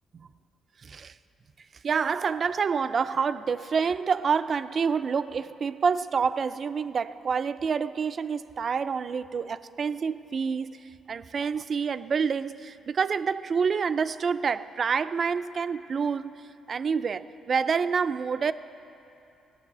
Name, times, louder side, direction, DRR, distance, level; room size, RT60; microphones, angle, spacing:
voice 1, 0.8-1.1 1.8-10.8 11.1-16.3 16.7-18.5, right 6 dB, 45° right, 0.4 m, -27 dB
16.5 x 6.1 x 8.3 m
cardioid pair, 90°, 0 cm